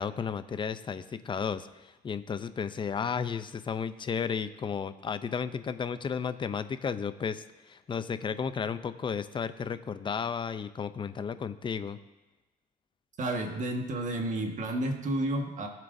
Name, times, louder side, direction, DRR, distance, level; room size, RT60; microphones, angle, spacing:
voice 1, 0.0-12.0, left 6 dB, 30° left, 12 dB, 0.6 m, -33 dB
voice 2, 13.2-15.7, right 1 dB, 50° right, 3 dB, 1.6 m, -31 dB
19.5 x 7.5 x 2.7 m, 1.1 s
cardioid pair, 110°, 17 cm